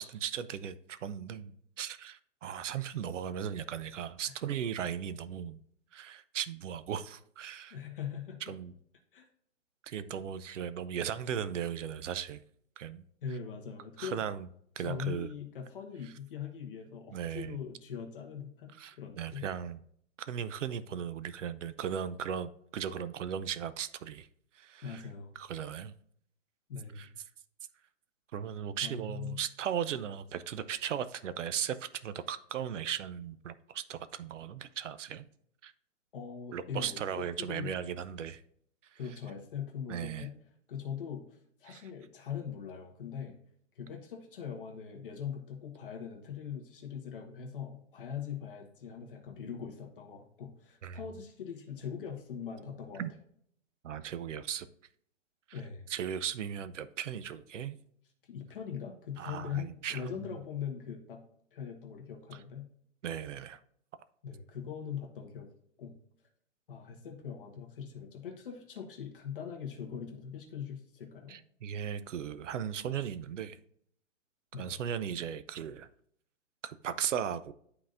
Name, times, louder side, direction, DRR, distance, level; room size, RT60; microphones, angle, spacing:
voice 1, 0.0-5.6 5.9-7.8 8.4-8.7 9.8-12.4 12.8-13.0 14.0-14.5 14.8-15.3 16.0-16.1 17.1-17.6 18.8-19.8 20.2-24.3 24.5-25.1 25.4-25.9 27.0-27.1 28.3-35.3 35.6-35.7 36.5-38.4 38.9-39.0 39.9-40.3 41.7-41.9 50.8-51.0 53.0-53.1 53.8-54.7 55.5-55.6 55.9-57.8 59.2-60.4 62.3-62.4 63.0-63.6 71.3-73.6 74.6-75.9 76.6-77.5, right 8 dB, 75° right, 14 dB, 0.6 m, -37 dB
voice 2, 7.7-8.4 9.1-9.2 13.2-14.2 14.8-19.5 24.8-25.3 26.7-27.1 28.8-29.4 36.1-37.7 39.0-40.3 40.7-43.4 43.7-53.0 55.5-55.8 58.2-61.2 61.5-62.7 64.2-65.5 65.8-65.9 66.7-71.4 74.5-74.7, left 7 dB, 45° left, 2 dB, 1.2 m, -41 dB
11.0 x 3.9 x 2.5 m, 0.65 s
hypercardioid pair, 175°, 37 cm